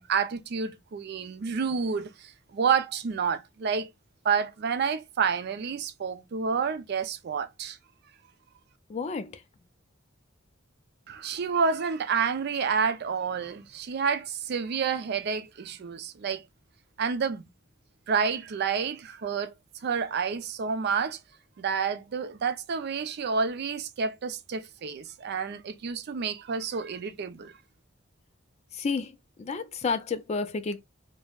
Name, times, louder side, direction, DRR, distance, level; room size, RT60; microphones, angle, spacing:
voice 1, 0.0-3.9 4.2-7.8 11.1-16.4 17.0-17.4 18.1-19.5 19.8-21.2 21.6-27.5, right 6 dB, 55° right, 0.4 m, -29 dB
voice 2, 8.9-9.3 28.7-29.1 29.4-30.8, left 4 dB, 35° left, 0.3 m, -30 dB
3.3 x 2.1 x 2.2 m
head